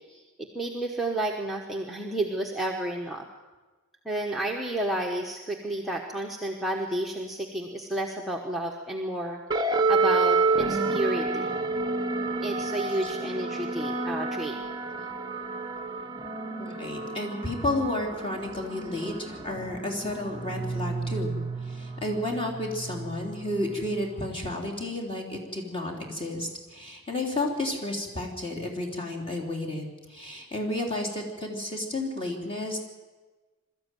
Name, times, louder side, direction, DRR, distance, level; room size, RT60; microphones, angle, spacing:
voice 1, 0.4-3.3 4.0-9.4 9.9-11.5 12.4-14.6, right 1 dB, ahead, -1 dB, 1.1 m, -31 dB
sound 1, 9.5-24.3, right 3 dB, 20° right, 0.9 m, -30 dB
voice 2, 16.6-32.8, left 1 dB, 25° left, -1 dB, 3.3 m, -32 dB
22.0 x 13.5 x 9.1 m, 1.3 s
head